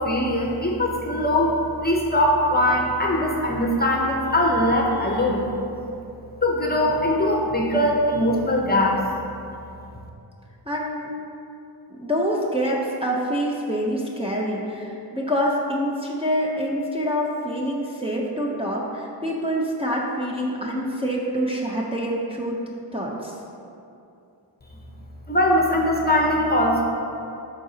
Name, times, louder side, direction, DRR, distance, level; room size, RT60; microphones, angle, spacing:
voice 1, 0.0-5.5 6.4-9.0 25.3-26.8, left 1 dB, 20° left, -1 dB, 0.7 m, -21 dB
voice 2, 10.7-11.1 11.9-22.6 22.9-23.3, equal, 15° right, -4 dB, 0.6 m, -26 dB
11.5 x 3.9 x 2.8 m, 2.6 s
wide cardioid pair, 110°, 45 cm